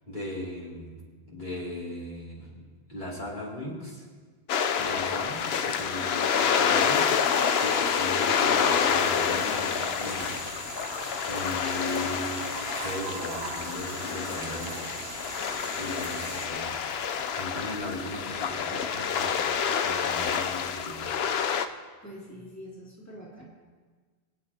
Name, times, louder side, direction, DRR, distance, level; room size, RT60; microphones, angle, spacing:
voice 1, 0.1-1.0 1.2-2.6 2.9-4.0 4.8-7.1 7.6-10.4 11.3-12.4 12.7-14.8 15.8-16.7 17.3-19.5 19.8-21.3, left 1 dB, 50° left, -7 dB, 3.0 m, -37 dB
sound 1, 4.5-21.7, left 7 dB, 80° left, 0.9 m, -28 dB
sound 2, 6.8-16.5, right 3 dB, 75° right, 1.4 m, -40 dB
voice 2, 22.0-23.4, equal, 15° left, -7 dB, 2.9 m, -44 dB
24.5 x 10.0 x 2.8 m, 1.5 s
omnidirectional pair, 1.1 m